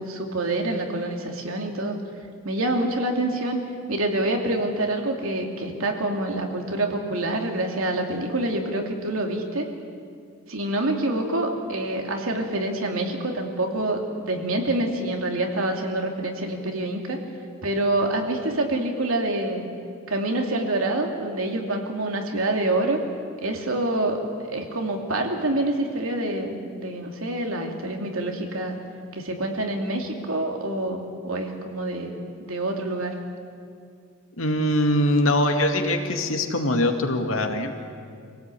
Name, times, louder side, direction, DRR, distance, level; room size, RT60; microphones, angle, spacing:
voice 1, 0.0-2.0 2.4-3.6 3.9-9.7 10.5-17.2 17.6-19.7 20.1-23.0 23.4-24.2 24.5-28.8 29.1-33.1, right 1 dB, 90° right, 2 dB, 2.8 m, -26 dB
voice 2, 34.4-37.7, left 1 dB, 80° left, 4 dB, 2.2 m, -22 dB
25.0 x 17.5 x 8.5 m, 2.3 s
head